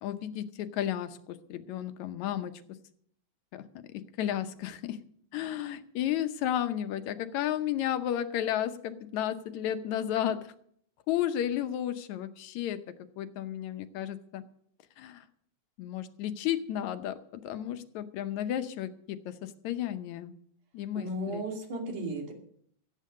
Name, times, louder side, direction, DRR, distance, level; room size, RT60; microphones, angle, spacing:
voice 1, 0.0-2.5 3.5-3.6 3.9-5.0 5.3-10.5 11.1-12.8 13.2-14.4 15.0-15.3 15.8-20.3 20.7-21.4, left 11 dB, 75° left, 10 dB, 2.1 m, -33 dB
voice 2, 20.9-22.3, right 1 dB, 85° right, 1 dB, 4.2 m, -35 dB
15.5 x 8.4 x 6.6 m, 0.64 s
omnidirectional pair, 3.4 m